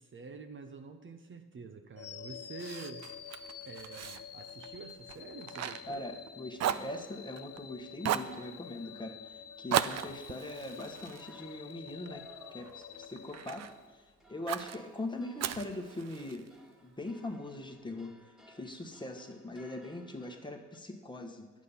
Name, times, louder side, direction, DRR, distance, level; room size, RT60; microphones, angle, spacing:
voice 1, 0.0-3.1 3.6-6.1, right 4 dB, 40° right, 6 dB, 0.9 m, -47 dB
sound 1, 2.0-14.1, left 8 dB, 55° left, 0.8 m, -49 dB
Fire, 2.6-6.3 6.6-7.6 8.0-8.4 9.7-12.1 12.6-13.7 14.5-14.8 15.4-16.5, right 10 dB, 60° right, 0.5 m, -36 dB
voice 2, 5.9-13.7 13.9-16.5 16.8-21.6, left 1 dB, 15° left, 4 dB, 1.2 m, -41 dB
sound 2, 7.6-7.8 8.3-10.5 10.9-20.8, equal, ahead, 1.7 m, -60 dB
10.5 x 8.5 x 5.6 m, 1.3 s
cardioid pair, 90°, 30 cm